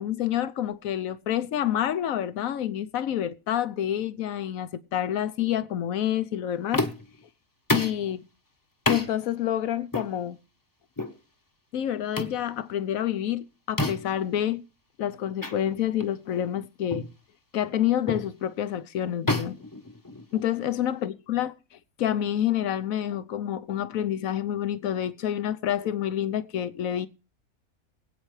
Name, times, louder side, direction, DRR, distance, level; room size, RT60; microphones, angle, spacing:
voice 1, 0.0-6.9 7.7-8.2 8.9-10.4 11.7-14.6 15.0-17.1 17.5-19.6 20.3-21.5 22.0-27.1, left 11 dB, 70° left, 1.2 m, -28 dB
sound 1, 6.7-7.2 7.7-8.0 8.9-9.1 9.9-10.1 11.0-11.2 12.2-12.4 13.8-14.2 15.4-15.6 16.0-16.2 16.9-17.1 18.1-18.3 19.3-20.5, left 2 dB, 15° left, 0.9 m, -28 dB
24.5 x 8.6 x 3.2 m
omnidirectional pair, 1.6 m